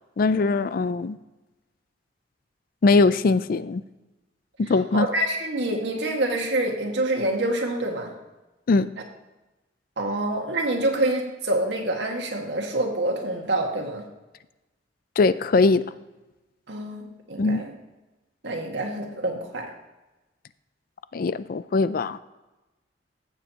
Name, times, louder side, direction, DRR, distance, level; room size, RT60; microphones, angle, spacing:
voice 1, 0.2-1.2 2.8-3.8 4.6-5.1 8.7-8.9 15.2-15.8 17.4-17.6 21.1-22.2, left 3 dB, 55° left, 15 dB, 0.4 m, -21 dB
voice 2, 4.9-8.1 10.0-14.0 16.7-17.8 18.4-19.7, right 1 dB, 75° right, 1 dB, 1.8 m, -26 dB
15.5 x 7.3 x 3.0 m, 1.1 s
head